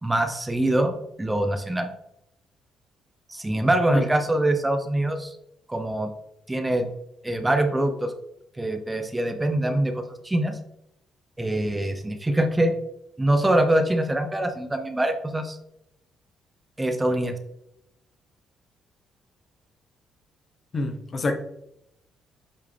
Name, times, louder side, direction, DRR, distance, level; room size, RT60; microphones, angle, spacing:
voice 1, 0.0-1.9 3.3-5.4 5.7-6.1 6.5-6.9 7.2-8.1 8.6-10.6 11.4-12.7 13.2-15.6 16.8-17.3, right 1 dB, 15° right, 7 dB, 0.8 m, -24 dB
voice 2, 20.7-21.3, left 2 dB, 45° left, 5 dB, 1.1 m, -26 dB
8.5 x 3.6 x 3.4 m, 0.81 s
cardioid pair, 90°, 0 cm